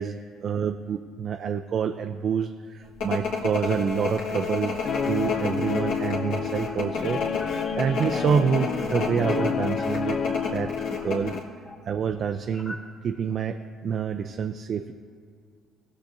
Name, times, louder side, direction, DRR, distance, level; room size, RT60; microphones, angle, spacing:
voice 1, 0.0-4.7 5.1-7.2 7.8-10.2 10.5-11.4 11.8-12.8 13.0-14.9, right 7 dB, 55° right, 7 dB, 0.4 m, -27 dB
sound 1, 3.0-11.4, left 4 dB, 75° left, 1.6 m, -30 dB
Guitar, 4.8-11.4, left 6 dB, 55° left, 0.4 m, -29 dB
sound 2, 5.0-5.6 6.2-7.0 7.3-7.9 8.2-8.4 8.7-11.9 12.4-13.4, left 1 dB, 20° left, 2.0 m, -45 dB
16.5 x 6.8 x 2.6 m, 2.1 s
hypercardioid pair, 60°, 0 cm